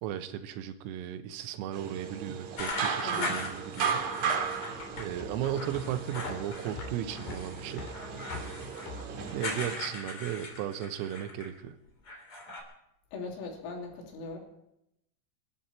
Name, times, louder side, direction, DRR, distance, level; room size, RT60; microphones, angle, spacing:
voice 1, 0.0-4.1 5.0-7.9 9.3-11.8, right 11 dB, 85° right, 9 dB, 3.7 m, -36 dB
sound 1, 1.7-9.8, right 7 dB, 60° right, 2.3 m, -36 dB
sound 2, 2.6-5.1 5.4-6.8 7.1-11.6 11.9-12.6, left 2 dB, 30° left, 3.1 m, -39 dB
voice 2, 3.0-3.4 13.1-14.4, left 4 dB, 75° left, 0 dB, 5.4 m, -39 dB
sound 3, 4.1-10.3, left 3 dB, 55° left, 4.6 m, -45 dB
28.0 x 11.5 x 4.3 m, 0.81 s
omnidirectional pair, 5.9 m